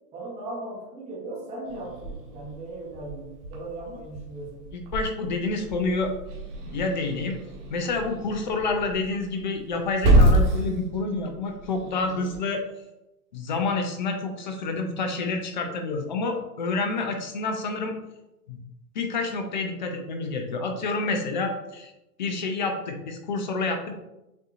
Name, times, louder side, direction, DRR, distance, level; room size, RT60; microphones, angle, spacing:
voice 1, 0.1-4.7, right 2 dB, 15° right, -7 dB, 0.9 m, -38 dB
Growling / Hiss, 1.6-12.4, right 1 dB, 35° right, 1.3 m, -28 dB
voice 2, 4.9-6.1 6.7-7.4 7.7-12.6 13.3-18.0 18.5-18.6 18.9-21.9 22.2-23.9, left 3 dB, 35° left, 5 dB, 0.4 m, -28 dB
6.7 x 2.8 x 2.4 m, 0.94 s
hypercardioid pair, 140°, 47 cm